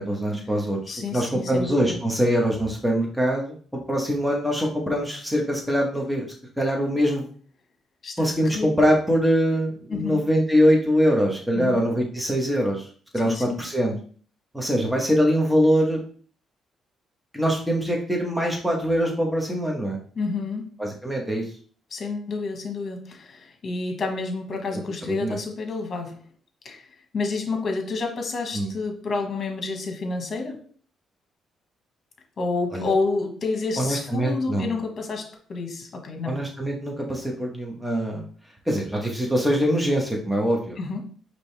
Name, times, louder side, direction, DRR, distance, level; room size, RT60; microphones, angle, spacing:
voice 1, 0.0-3.5 3.9-6.2 6.6-7.3 8.2-12.9 13.1-13.9 14.5-16.0 17.3-20.0 20.8-21.4 25.1-25.4 28.5-28.7 32.7-32.9 33.8-34.7 36.2-38.2 38.7-40.8, equal, 5° right, -1 dB, 1.3 m, -23 dB
voice 2, 0.9-2.0 8.0-8.7 9.9-10.2 11.5-11.9 13.2-13.6 20.1-20.7 21.9-26.2 26.6-26.8 27.1-30.6 32.4-36.5 40.8-41.0, left 3 dB, 45° left, 3 dB, 1.4 m, -29 dB
5.2 x 3.0 x 3.4 m, 0.43 s
cardioid pair, 90°, 0 cm